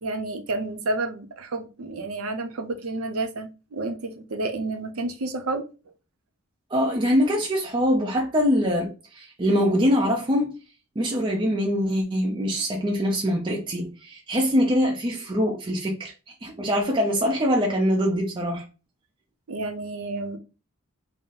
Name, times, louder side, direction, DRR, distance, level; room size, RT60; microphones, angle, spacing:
voice 1, 0.0-5.9 19.5-20.4, right 2 dB, 85° right, 0.6 m, -30 dB
voice 2, 6.7-10.5 11.0-16.1 16.4-18.6, equal, 25° right, 0.5 m, -23 dB
3.8 x 2.0 x 4.0 m
head